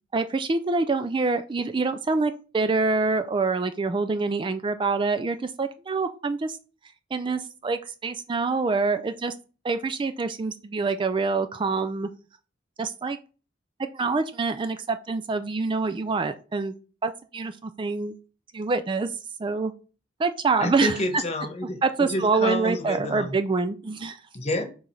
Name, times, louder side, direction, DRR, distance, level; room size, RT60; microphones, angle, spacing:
voice 1, 0.1-6.6 7.1-9.3 9.6-12.1 12.8-13.2 13.8-16.7 17.0-18.2 18.5-19.1 19.4-19.7 20.2-21.2 21.8-24.2, right 4 dB, 25° right, 0.3 m, -26 dB
voice 2, 20.6-23.4 24.3-24.6, left 1 dB, 35° left, 1.1 m, -29 dB
4.8 x 3.9 x 5.5 m
head